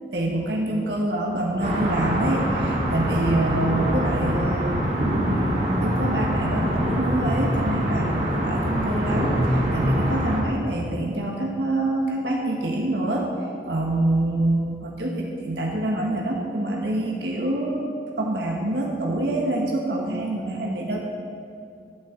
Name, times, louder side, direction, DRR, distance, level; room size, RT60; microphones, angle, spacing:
voice 1, 0.1-4.8 5.3-13.3 13.6-17.9 18.2-21.0, right 1 dB, 75° right, -1 dB, 1.3 m, -26 dB
sound 1, 1.6-10.4, equal, 40° right, 1.9 m, -24 dB
11.5 x 6.0 x 7.5 m, 2.4 s
head